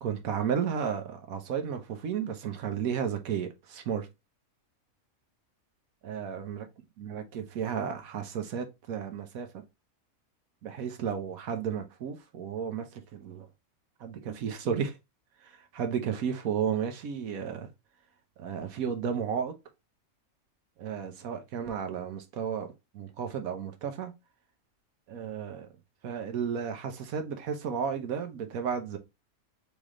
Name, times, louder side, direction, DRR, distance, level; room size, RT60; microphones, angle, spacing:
voice 1, 0.0-4.1 6.0-6.7 7.0-9.6 10.6-13.5 14.0-15.0 15.4-17.7 18.4-19.6 20.8-24.1 25.1-25.7 26.0-29.0, right 7 dB, 90° right, 1.3 m, -33 dB
4.1 x 3.4 x 3.7 m
omnidirectional pair, 1.4 m